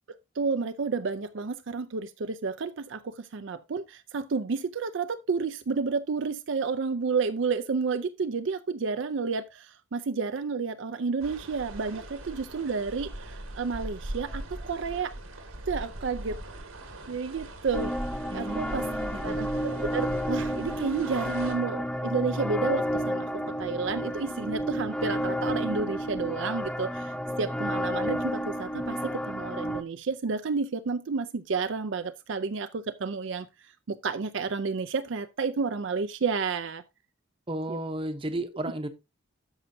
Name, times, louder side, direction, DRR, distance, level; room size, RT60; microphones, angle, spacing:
voice 1, 0.1-15.1 15.7-16.4 17.1-17.9 18.3-18.8 19.2-27.1 27.4-33.5 33.9-36.8 37.7-37.8, right 4 dB, 60° right, 0.5 m, -31 dB
sound 1, 11.2-21.5, right 1 dB, 85° right, 2.0 m, -40 dB
sound 2, 17.7-29.8, equal, 5° left, 0.4 m, -31 dB
voice 2, 18.3-19.4 37.5-38.9, right 1 dB, 25° right, 0.8 m, -34 dB
13.0 x 5.5 x 2.7 m
head